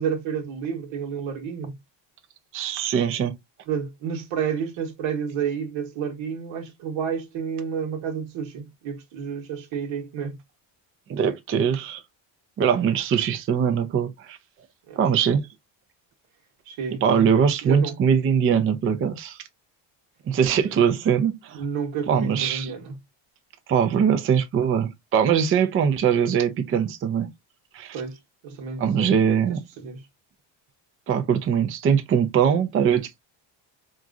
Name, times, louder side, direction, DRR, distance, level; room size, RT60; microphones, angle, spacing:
voice 1, 0.0-1.8 3.7-10.4 14.9-15.0 16.7-17.3 17.6-18.0 21.5-23.0 27.9-28.2 28.4-30.0, right 7 dB, 75° right, 1.1 m, -30 dB
voice 2, 2.5-3.3 11.1-12.0 12.6-14.4 15.0-15.5 17.0-19.4 20.3-21.6 22.1-22.7 23.7-27.3 27.7-28.0 28.8-29.6 31.1-33.2, right 7 dB, 30° right, 0.4 m, -22 dB
2.9 x 2.4 x 2.4 m
cardioid pair, 115°, 49 cm